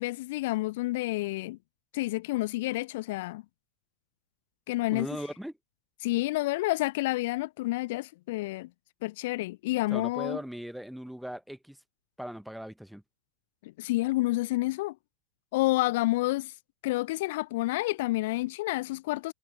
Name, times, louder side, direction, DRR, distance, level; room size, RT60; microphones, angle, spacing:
voice 1, 0.0-1.6 1.9-3.4 4.7-5.1 6.0-8.7 9.0-10.4 13.6-14.9 15.5-16.5 16.8-19.3, left 19 dB, 50° left, 0.6 m, -29 dB
voice 2, 4.9-5.5 9.9-11.8 12.2-13.0, equal, ahead, 1.2 m, -38 dB
figure-of-eight pair, 90°, 0 cm